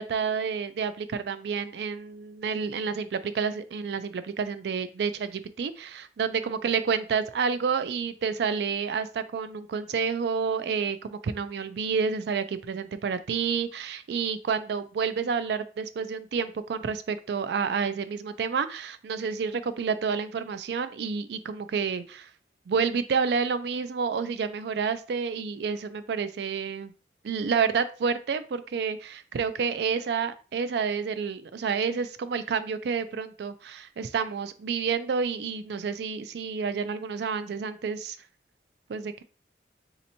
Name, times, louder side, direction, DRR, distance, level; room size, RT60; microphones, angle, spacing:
voice 1, 0.0-22.3 22.7-26.9 27.2-38.2 38.9-39.2, right 6 dB, 65° right, 12 dB, 0.3 m, -29 dB
4.2 x 2.8 x 2.6 m, 0.37 s
head